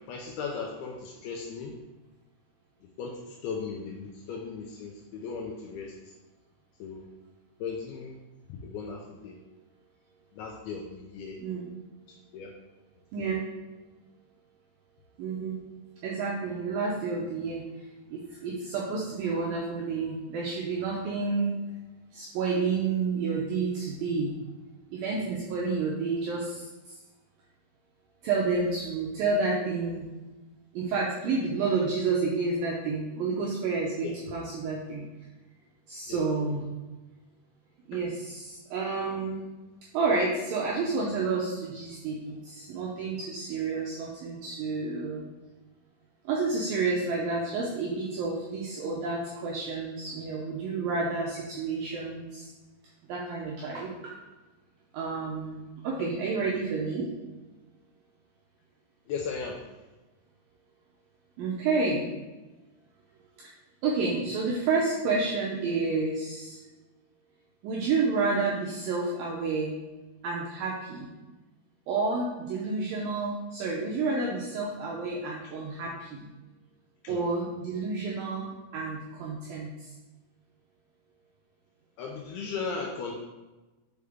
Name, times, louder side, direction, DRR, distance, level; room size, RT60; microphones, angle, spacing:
voice 1, 0.1-1.7 3.0-5.9 6.8-7.1 7.6-8.2 8.5-9.4 10.3-11.4 12.3-12.5 13.2-13.3 34.0-34.1 36.1-36.6 37.9-38.0 59.1-59.6 77.0-77.2 82.0-83.1, left 5 dB, 80° left, 0 dB, 2.2 m, -37 dB
voice 2, 11.4-11.8 13.1-13.5 15.2-15.6 16.0-17.6 18.1-21.6 22.1-24.3 24.9-27.0 28.2-30.1 30.7-35.1 35.9-36.7 37.9-39.4 39.9-45.2 46.3-52.5 53.1-54.1 54.9-57.1 61.4-62.1 63.8-66.6 67.6-69.7 70.2-71.1 71.9-76.3 77.1-79.9, right 4 dB, 85° right, -3 dB, 2.0 m, -30 dB
6.4 x 4.7 x 3.5 m, 1.1 s
omnidirectional pair, 5.0 m